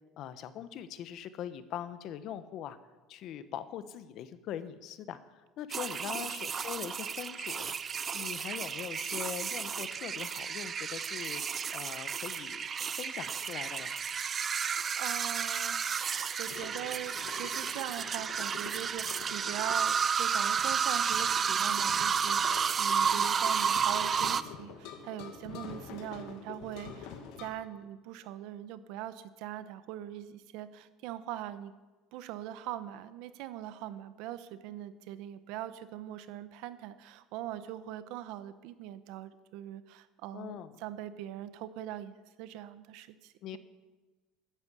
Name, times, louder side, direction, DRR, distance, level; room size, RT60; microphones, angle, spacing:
voice 1, 0.2-2.8 3.1-7.8 8.1-11.4 11.7-12.7 12.9-13.9 23.1-23.3 40.3-40.7 43.4-43.6, left 10 dB, 50° left, 13 dB, 1.0 m, -42 dB
sound 1, 5.7-24.4, right 7 dB, 25° right, 0.5 m, -32 dB
voice 2, 14.6-16.1 16.4-31.7 32.1-43.6, right 12 dB, 65° right, 13 dB, 1.0 m, -42 dB
sound 2, 16.5-27.5, left 6 dB, 65° left, 2.1 m, -47 dB
13.5 x 10.5 x 8.3 m, 1.2 s
cardioid pair, 145°, 0 cm